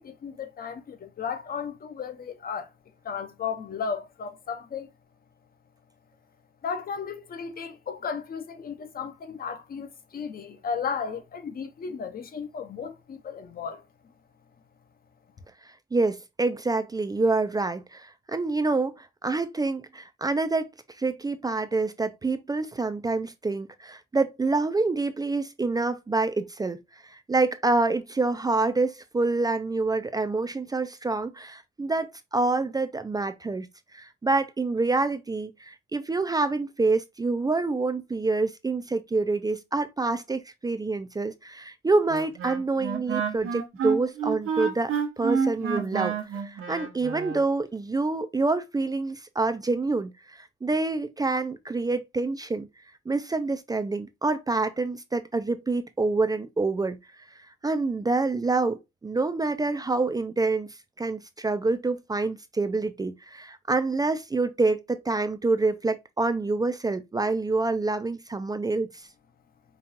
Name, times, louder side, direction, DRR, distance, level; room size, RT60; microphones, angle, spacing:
voice 1, 0.0-2.7 3.0-4.9 6.6-13.8, left 6 dB, 45° left, 0.8 m, -34 dB
voice 2, 15.9-20.7 21.0-33.7 33.9-52.7 53.1-57.0 57.6-60.7 61.0-68.9, right 3 dB, 20° right, 0.4 m, -27 dB
Wind instrument woodwind instrument, 42.1-47.4, right 6 dB, 85° right, 0.9 m, -29 dB
5.2 x 2.4 x 2.7 m
cardioid pair, 125°, 21 cm